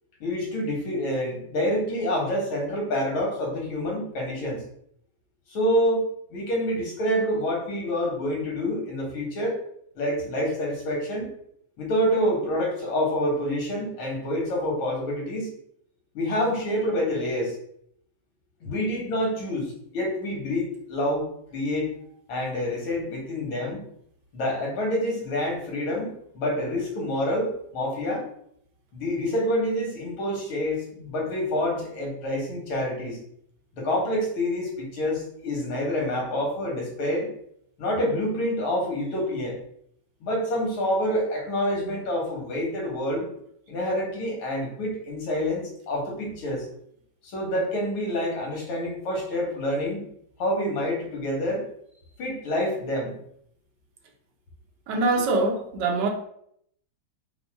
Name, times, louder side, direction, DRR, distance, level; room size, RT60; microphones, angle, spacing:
voice 1, 0.2-4.6 5.5-9.6 10.0-11.3 11.8-15.5 16.1-17.5 18.6-21.3 21.5-21.9 22.3-23.9 24.3-28.3 28.9-33.2 33.7-37.3 37.8-39.6 40.2-43.3 43.7-46.7 47.2-50.0 50.4-51.7 52.2-53.2, equal, 85° left, 0 dB, 2.2 m, -27 dB
voice 2, 54.9-56.1, right 3 dB, 65° right, 2 dB, 1.2 m, -23 dB
5.1 x 2.2 x 4.7 m, 0.69 s
omnidirectional pair, 2.2 m